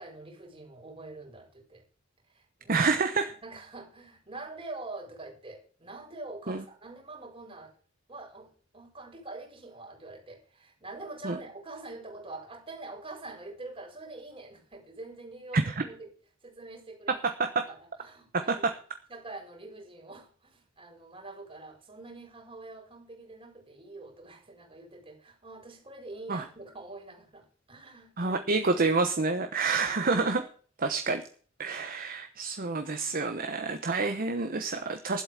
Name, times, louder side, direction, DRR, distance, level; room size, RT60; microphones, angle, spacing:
voice 1, 0.0-1.8 2.3-2.9 3.4-7.7 8.1-16.1 16.4-17.3 17.7-18.7 19.1-28.4 29.7-30.5 31.7-31.8, right 2 dB, 30° right, 2 dB, 4.4 m, -45 dB
voice 2, 2.7-3.3 6.5-6.6 11.2-11.4 15.5-15.8 17.2-17.6 18.3-18.7 26.3-26.4 28.2-30.4 30.8-31.2 31.6-35.2, right 3 dB, 45° right, 7 dB, 1.0 m, -28 dB
11.5 x 7.9 x 7.4 m, 0.43 s
head